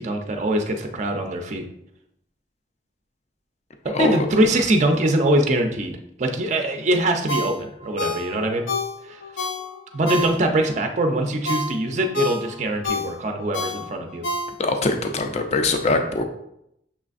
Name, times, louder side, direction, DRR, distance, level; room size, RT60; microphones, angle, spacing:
voice 1, 0.0-1.6 4.0-5.9 6.2-8.6 9.0-9.2 9.9-14.2, right 1 dB, 40° right, 4 dB, 0.4 m, -22 dB
Ringtone, 7.3-10.7 11.1-14.9 15.3-15.4, left 2 dB, 85° left, 0.6 m, -29 dB
voice 2, 14.6-16.2, left 3 dB, 35° left, 5 dB, 0.4 m, -22 dB
6.1 x 3.2 x 2.5 m, 0.78 s
head